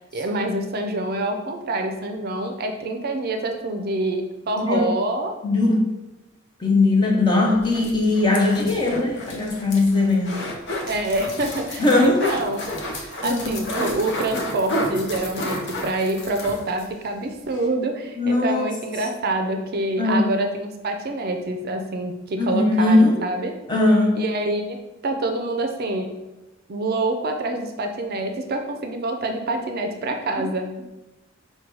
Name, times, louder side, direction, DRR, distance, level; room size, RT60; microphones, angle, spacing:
voice 1, 0.0-5.3 10.9-12.6 12.9-23.5 24.1-24.8 25.0-26.1 26.7-30.7, right 2 dB, 50° right, 5 dB, 0.5 m, -26 dB
voice 2, 5.4-5.9 6.6-10.5 11.8-12.2 13.2-13.6 18.2-18.7 20.0-20.3 22.4-23.2 23.7-24.2, left 2 dB, 25° left, -1 dB, 0.8 m, -19 dB
sound 1, 7.5-16.9 17.2-17.3 17.5-17.7, left 1 dB, 60° left, 0.7 m, -31 dB
4.6 x 2.2 x 4.6 m, 1.0 s
head